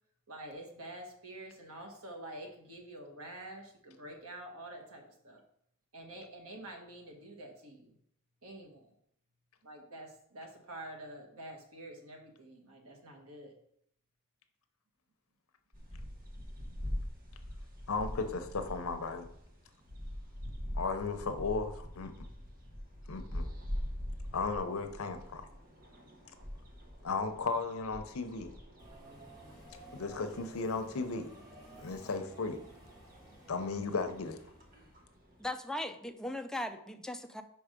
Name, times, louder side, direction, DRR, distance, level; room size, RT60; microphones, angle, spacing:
voice 1, 0.3-5.4 5.9-8.0 8.4-8.9 9.6-13.5, right 1 dB, 85° right, 2 dB, 1.4 m, -47 dB
sound 1, 15.7-35.5, equal, 40° right, 1.1 m, -44 dB
voice 2, 17.9-19.3 20.7-22.1 23.1-23.5 24.3-25.5 27.0-28.5 29.9-31.3 31.8-32.6 33.5-34.4, left 4 dB, 75° left, 7 dB, 0.7 m, -35 dB
Subway metro underground, 28.8-35.0, right 1 dB, 15° right, 2.0 m, -54 dB
voice 3, 35.4-37.4, left 1 dB, 5° left, 7 dB, 0.4 m, -38 dB
5.2 x 4.7 x 5.1 m, 0.71 s
head